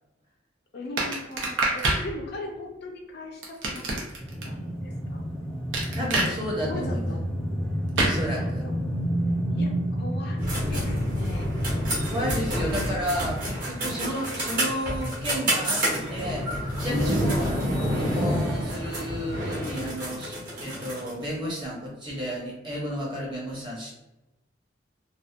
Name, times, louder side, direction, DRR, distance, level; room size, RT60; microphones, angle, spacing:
voice 1, 0.7-4.0 4.4-5.2 6.6-7.2 8.1-8.8 9.5-10.4 10.7-11.5 16.8-17.4, equal, 60° left, 1 dB, 0.5 m, -38 dB
sound 1, 1.0-2.0 3.4-4.4 5.7-6.3 8.0-8.2, right 2 dB, 85° right, 0.7 m, -25 dB
sound 2, 4.2-12.2, equal, 5° left, 0.4 m, -30 dB
voice 2, 5.9-7.1 8.0-8.6 12.1-23.9, equal, 25° right, -5 dB, 0.9 m, -32 dB
sound 3, 10.4-21.2, equal, 50° right, 1.1 m, -28 dB
2.6 x 2.1 x 2.4 m, 0.96 s
head